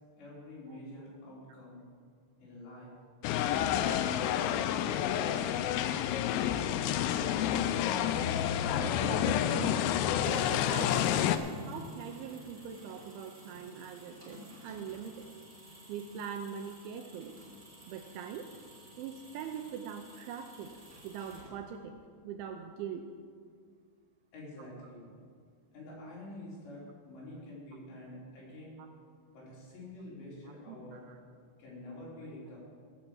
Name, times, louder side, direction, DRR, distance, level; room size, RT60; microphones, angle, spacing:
voice 1, 0.2-1.8 2.4-2.9 3.3-5.4 6.0-7.0 24.3-25.1 25.7-28.8 29.3-31.1 31.6-32.6, left 1 dB, 60° left, -6 dB, 5.6 m, -48 dB
sound 1, 3.2-11.4, left 10 dB, 90° left, 3.2 m, -29 dB
voice 2, 8.7-9.9 10.2-15.3 15.9-17.4 17.9-18.5 19.0-20.8 21.0-23.1 30.7-31.2, right 7 dB, 80° right, 5 dB, 2.8 m, -42 dB
sound 2, 10.0-21.9, equal, 15° right, 2.2 m, -53 dB
16.5 x 5.9 x 7.6 m, 2.1 s
omnidirectional pair, 5.8 m